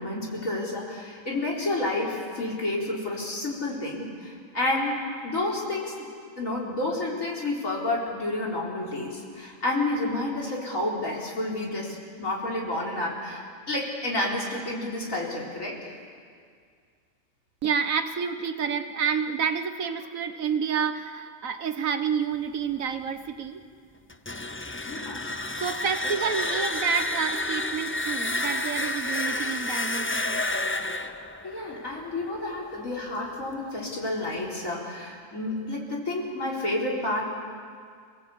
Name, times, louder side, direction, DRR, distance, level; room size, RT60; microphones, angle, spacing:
voice 1, 0.0-5.9 6.4-16.0 24.9-25.2 31.1-37.3, left 2 dB, 80° left, -3 dB, 4.7 m, -30 dB
voice 2, 17.6-23.6 25.6-30.4, right 6 dB, 90° right, 9 dB, 1.6 m, -29 dB
sound 1, 24.1-32.9, left 2 dB, 15° left, 0.4 m, -30 dB
28.0 x 18.5 x 8.4 m, 2.1 s
omnidirectional pair, 1.4 m